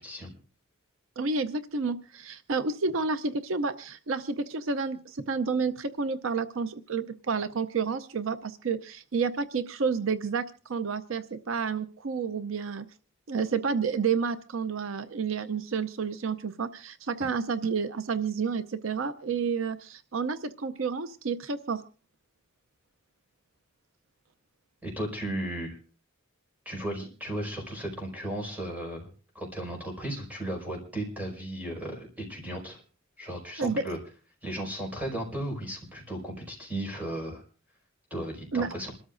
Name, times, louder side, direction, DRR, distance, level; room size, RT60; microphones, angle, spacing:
voice 1, 1.2-12.9 13.3-21.8 33.6-33.8 38.5-38.7, right 5 dB, 70° right, 11 dB, 0.6 m, -30 dB
voice 2, 24.8-25.8 26.6-29.1 29.3-32.8 33.2-34.0 34.4-37.4 38.1-38.9, right 1 dB, 10° right, 0 dB, 5.1 m, -35 dB
27.0 x 13.0 x 2.6 m, 0.37 s
head